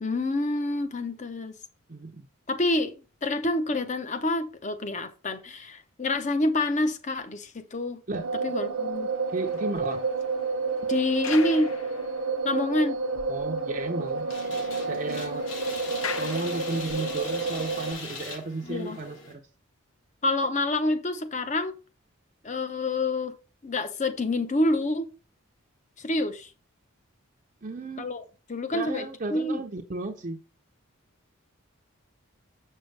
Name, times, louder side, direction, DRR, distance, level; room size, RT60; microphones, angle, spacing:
voice 1, 0.0-1.5 2.5-8.0 8.4-9.1 10.9-11.7 12.4-13.0 18.6-19.0 20.2-21.8 22.4-23.3 23.6-25.1 26.0-26.5 28.0-28.2 28.5-29.6, left 2 dB, 35° left, 0.7 m, -27 dB
voice 2, 1.9-2.3 8.1-8.2 9.3-10.0 13.3-14.3 14.9-15.4 16.2-19.4 27.6-28.1 28.7-30.4, right 2 dB, 35° right, 0.6 m, -34 dB
sound 1, 8.1-17.9, right 4 dB, 75° right, 0.9 m, -30 dB
sound 2, 9.1-12.8 13.1-13.2 13.6-13.7 13.9-17.2 17.9-18.1, left 6 dB, 75° left, 0.7 m, -42 dB
sound 3, 14.3-19.3, left 3 dB, 60° left, 2.8 m, -40 dB
7.2 x 6.5 x 3.2 m
head